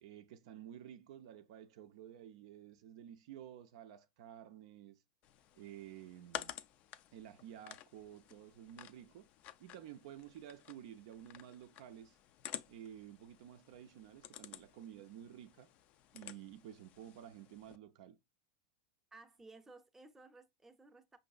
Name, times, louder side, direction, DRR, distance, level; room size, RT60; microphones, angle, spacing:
voice 1, 0.0-5.0 5.5-6.6 7.1-9.3 9.6-12.2 12.7-15.7 16.1-18.2, right 10 dB, 65° right, 0.4 m, -52 dB
sound 1, 5.2-17.8, left 12 dB, 45° left, 0.3 m, -52 dB
voice 2, 19.1-21.2, right 3 dB, 10° right, 0.6 m, -57 dB
5.2 x 2.6 x 2.3 m
hypercardioid pair, 100°, 3 cm